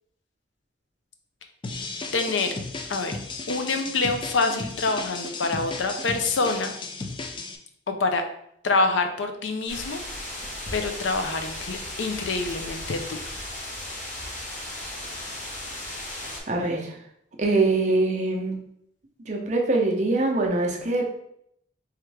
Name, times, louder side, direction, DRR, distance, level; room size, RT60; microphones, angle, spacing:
sound 1, 1.6-7.6, left 3 dB, 25° left, 0.3 m, -35 dB
voice 1, 2.1-2.5 2.9-3.1 3.5-6.7 7.9-8.2 8.6-10.0 10.3-10.4 10.7-13.2, left 3 dB, 85° left, 6 dB, 0.5 m, -26 dB
sound 2, 9.7-16.4, left 1 dB, 40° left, 1.0 m, -36 dB
voice 2, 16.5-17.0 17.4-18.6 19.3-21.0, right 2 dB, 40° right, 0 dB, 0.6 m, -23 dB
3.5 x 3.2 x 3.2 m, 0.73 s
head